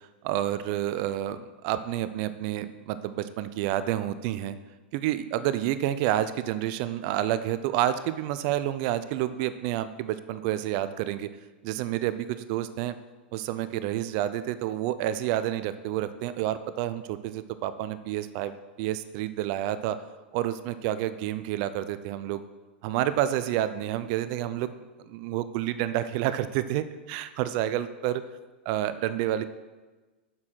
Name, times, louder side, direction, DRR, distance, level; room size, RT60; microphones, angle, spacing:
voice 1, 0.0-4.6 4.9-11.3 11.6-12.9 13.3-20.0 20.3-22.4 22.8-24.7 25.1-28.2 28.7-29.4, right 12 dB, 50° right, 13 dB, 0.5 m, -29 dB
7.5 x 6.2 x 5.7 m, 1.2 s
hypercardioid pair, 120°, 6 cm